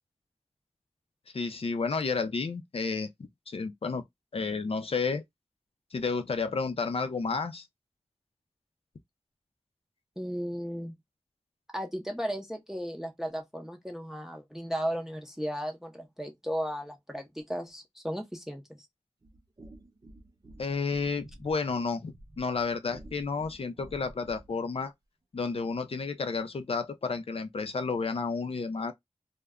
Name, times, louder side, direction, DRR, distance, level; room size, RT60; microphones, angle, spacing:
voice 1, 1.3-3.1 3.5-4.0 4.3-5.2 5.9-7.7 20.6-24.9 25.3-28.9, left 4 dB, 65° left, 0.5 m, -31 dB
voice 2, 10.2-10.9 11.7-18.8, equal, 5° right, 0.6 m, -35 dB
sound 1, 19.2-24.6, right 1 dB, 40° right, 0.6 m, -51 dB
2.2 x 2.1 x 3.5 m
wide cardioid pair, 60°, 10 cm